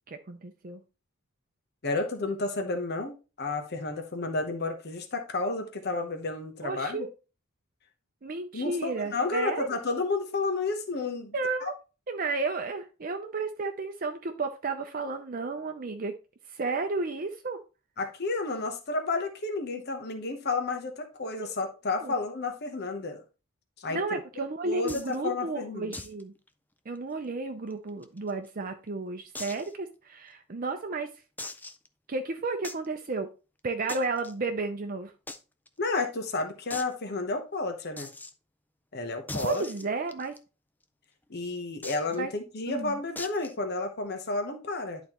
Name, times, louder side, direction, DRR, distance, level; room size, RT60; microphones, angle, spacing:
voice 1, 0.1-0.8 6.6-7.1 8.2-9.8 11.3-11.7 12.1-16.1 16.5-17.6 21.4-21.5 22.0-22.1 23.9-26.3 26.9-31.1 32.1-33.3 33.6-35.1 39.4-40.3 42.2-42.3 42.7-43.0, right 3 dB, 40° right, 6 dB, 0.6 m, -32 dB
voice 2, 1.8-7.1 8.5-11.7 18.0-23.2 23.8-24.0 24.6-26.0 35.8-38.1 38.9-39.6 41.3-45.0, left 3 dB, 50° left, 5 dB, 1.0 m, -31 dB
sound 1, 24.9-25.2 25.9-26.2 26.5-26.6 27.0-27.1 27.7-28.5 29.3-29.7 30.3-30.4 31.4-31.9 32.6-32.9 33.9-34.3 35.3-35.4 35.7-35.8 36.0-36.1 36.7-36.9 38.0-38.3 39.3-40.4 41.8-42.2 43.2-43.5, left 2 dB, 10° left, 0.4 m, -40 dB
11.0 x 4.1 x 3.0 m, 0.32 s
head